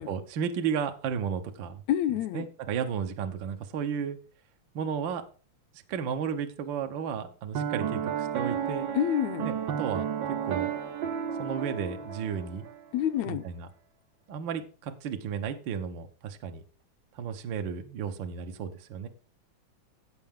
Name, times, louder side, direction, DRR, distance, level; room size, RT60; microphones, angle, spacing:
voice 1, 0.0-1.8 2.3-4.2 4.7-5.2 5.9-8.9 9.4-10.0 10.4-10.7 11.4-12.7 13.3-13.7 14.3-16.6 17.1-19.1, right 7 dB, 60° right, 1.2 m, -33 dB
voice 2, 1.9-2.5 8.9-9.5 12.9-13.5, left 11 dB, 80° left, 1.9 m, -27 dB
Piano, 7.5-12.8, right 8 dB, 85° right, 1.0 m, -32 dB
16.0 x 5.8 x 3.7 m
omnidirectional pair, 3.3 m